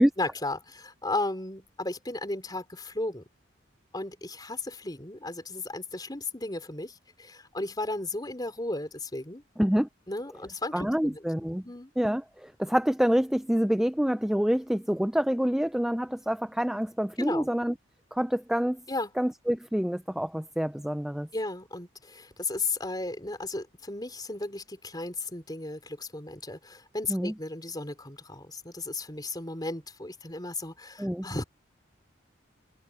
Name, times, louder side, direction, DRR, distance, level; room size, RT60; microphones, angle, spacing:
voice 1, 0.2-3.2 3.9-9.4 10.1-11.2 11.6-11.9 17.2-17.5 18.9-19.1 21.3-31.4, left 2 dB, 20° left, 3.9 m, -35 dB
voice 2, 9.6-9.9 10.7-11.6 12.0-17.7 18.1-18.8 19.2-21.3 27.1-27.3 31.0-31.3, equal, 5° right, 0.3 m, -26 dB
head